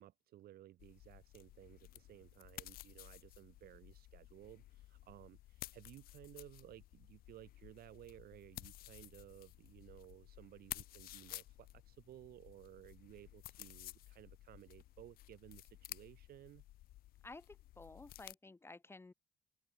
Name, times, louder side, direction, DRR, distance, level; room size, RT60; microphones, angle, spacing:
voice 1, 0.0-16.6, right 13 dB, 65° right, 1.2 m, -58 dB
sound 1, 0.8-18.3, left 15 dB, 60° left, 0.4 m, -54 dB
voice 2, 17.2-19.1, left 3 dB, 15° left, 2.3 m, -54 dB
cardioid pair, 110°, 17 cm